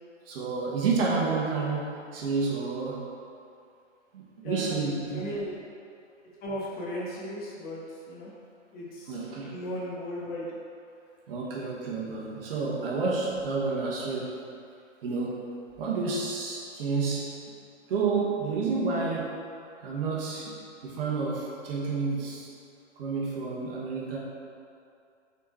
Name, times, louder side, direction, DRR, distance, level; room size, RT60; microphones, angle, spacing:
voice 1, 0.2-3.1 4.1-5.4 9.1-9.6 11.3-14.4 15.0-15.5 15.8-17.4 17.9-19.4 19.8-22.5 23.0-24.2, right 4 dB, 50° right, -4 dB, 1.5 m, -30 dB
voice 2, 4.4-5.6 6.4-8.3 8.7-9.2 9.5-10.5, left 1 dB, 25° left, -6 dB, 1.2 m, -36 dB
6.2 x 4.3 x 4.4 m, 2.5 s
hypercardioid pair, 125°, 37 cm